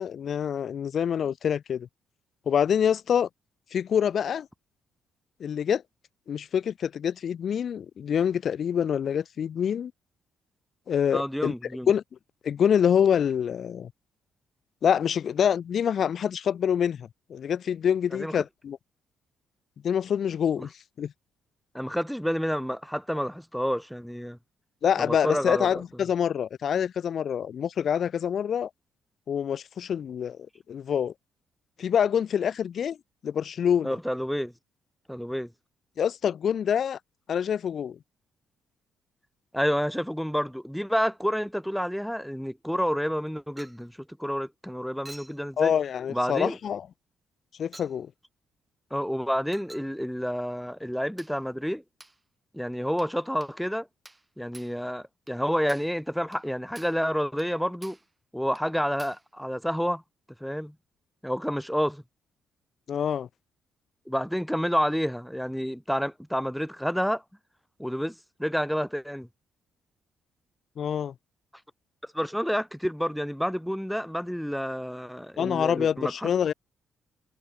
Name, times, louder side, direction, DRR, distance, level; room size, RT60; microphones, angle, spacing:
voice 1, 0.0-1.9 2.5-3.3 3.7-4.5 5.4-5.8 6.3-9.9 10.9-11.5 11.9-12.0 12.4-13.9 14.8-18.8 19.8-21.1 24.8-28.7 29.3-31.1 31.8-33.0 33.2-34.0 36.0-37.0 37.3-38.0 45.6-46.9 47.6-48.1 62.9-63.3 70.8-71.1 75.4-76.5, left 8 dB, 60° left, 0.5 m, -26 dB
voice 2, 11.1-11.9 18.1-18.4 20.6-20.7 21.7-24.4 25.0-25.8 33.8-34.5 35.1-35.5 39.5-43.9 44.2-45.7 46.1-46.6 48.9-51.8 52.5-53.9 54.4-58.0 58.3-60.0 60.4-60.7 61.2-62.0 64.1-67.2 67.8-68.1 68.4-69.3 72.1-76.3, equal, ahead, 0.7 m, -29 dB
Chink clink, 43.6-43.9 45.0-45.4 46.4-46.6 47.7-48.0 49.5-49.9 51.2-51.4 52.0-52.2 53.0-53.2 53.4-53.6 54.0-54.3 54.5-54.8 55.3-55.4 55.7-56.0 56.3-56.5 56.7-57.0 57.4-57.5 57.8-58.1 58.5-58.7 59.0-59.3, right 2 dB, 15° right, 3.2 m, -50 dB
cardioid pair, 90°, 0 cm